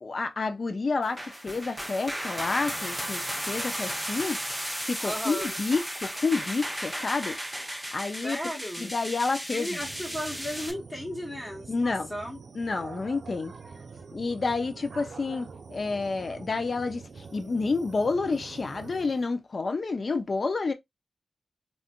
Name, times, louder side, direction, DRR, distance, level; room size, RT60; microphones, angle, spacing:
voice 1, 0.0-4.4 4.8-7.4 7.9-8.4 8.8-9.8 11.7-12.1 12.5-13.5 14.1-20.7, left 3 dB, 60° left, 0.5 m, -29 dB
sound 1, 1.0-10.7, equal, 5° right, 0.7 m, -35 dB
voice 2, 5.0-5.5 8.2-8.9 9.5-12.4, equal, 25° left, 1.4 m, -35 dB
sound 2, 9.8-19.3, right 4 dB, 75° right, 0.4 m, -45 dB
3.6 x 2.5 x 2.2 m
cardioid pair, 55°, 0 cm